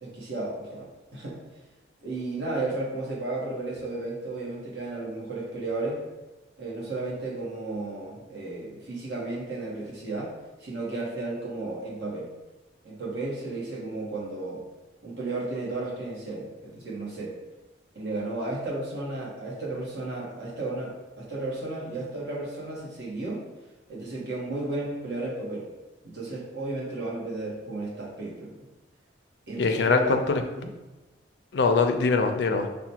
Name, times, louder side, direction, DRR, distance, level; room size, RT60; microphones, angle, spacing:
voice 1, 0.0-1.4 2.0-6.0 6.6-10.3 10.6-12.3 12.8-14.6 15.0-17.4 17.9-23.4 23.9-25.6 26.0-28.6 29.5-30.2 30.5-30.7, right 2 dB, 70° right, -4 dB, 1.1 m, -33 dB
voice 2, 29.6-30.4 31.5-32.7, left 4 dB, 70° left, 5 dB, 0.4 m, -22 dB
5.8 x 2.2 x 2.8 m, 1.1 s
head